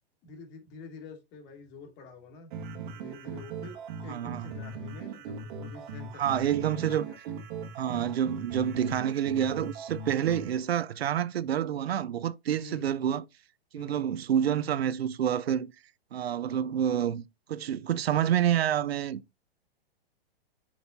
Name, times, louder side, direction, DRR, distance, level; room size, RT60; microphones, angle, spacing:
voice 1, 0.2-2.5 2.9-7.2 12.5-12.9 13.7-14.1, left 3 dB, 35° left, 2.4 m, -47 dB
sound 1, 2.5-10.5, right 4 dB, 55° right, 1.9 m, -39 dB
voice 2, 4.1-4.5 6.2-7.1 7.8-13.2 13.7-15.7 16.1-19.2, right 10 dB, 90° right, 0.6 m, -28 dB
7.0 x 6.3 x 2.7 m
hypercardioid pair, 130°, 30 cm